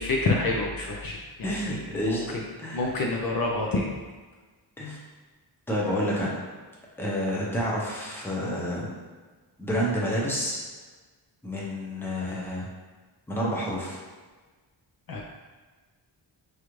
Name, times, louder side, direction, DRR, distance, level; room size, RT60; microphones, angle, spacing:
voice 1, 0.0-2.4 2.7-3.9 15.1-15.2, left 2 dB, 50° left, -1 dB, 0.5 m, -28 dB
voice 2, 1.4-2.9 4.8-5.0 5.7-6.3 7.0-9.0 9.6-10.6 11.4-12.7 13.3-14.0, equal, 5° left, -5 dB, 0.6 m, -29 dB
4.7 x 2.5 x 3.0 m, 1.3 s
wide cardioid pair, 160°, 45 cm